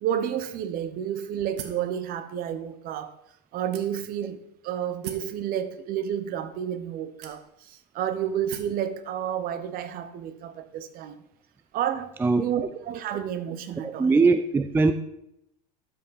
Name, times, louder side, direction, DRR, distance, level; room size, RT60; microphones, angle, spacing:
voice 1, 0.0-3.1 3.5-4.4 4.6-11.2 11.7-12.1 12.4-14.1, right 9 dB, 45° right, 0.9 m, -30 dB
sound 1, 1.6-1.9 2.7-2.8 3.7-4.2 5.0-5.4 6.3-6.4 7.2-7.7 8.5-8.8, right 10 dB, 70° right, 1.1 m, -40 dB
voice 2, 13.8-14.9, right 4 dB, 10° right, 0.4 m, -21 dB
12.0 x 5.2 x 4.2 m
hypercardioid pair, 105°, 21 cm